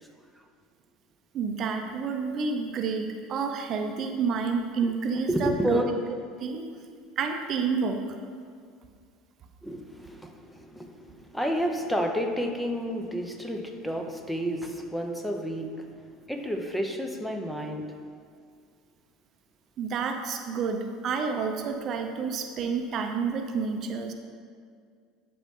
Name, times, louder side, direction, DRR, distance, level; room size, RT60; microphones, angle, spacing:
voice 1, 1.3-5.8 6.4-6.7 7.2-8.0 19.8-24.1, right 5 dB, 45° right, 5 dB, 0.6 m, -29 dB
voice 2, 5.3-5.9 9.6-18.0, equal, 5° left, 3 dB, 0.7 m, -30 dB
11.5 x 4.2 x 3.7 m, 2.1 s
supercardioid pair, 105°, 0 cm